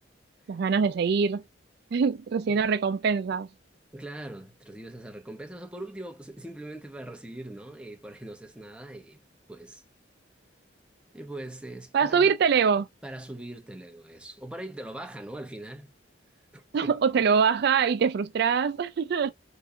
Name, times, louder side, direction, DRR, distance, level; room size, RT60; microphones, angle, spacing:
voice 1, 0.5-1.4 1.9-3.5 11.9-12.9 16.7-19.3, right 6 dB, 55° right, 0.3 m, -24 dB
voice 2, 3.9-9.2 9.5-9.8 11.1-12.3 13.0-15.9 16.5-17.0, right 1 dB, 5° right, 0.8 m, -41 dB
5.2 x 3.3 x 2.7 m
head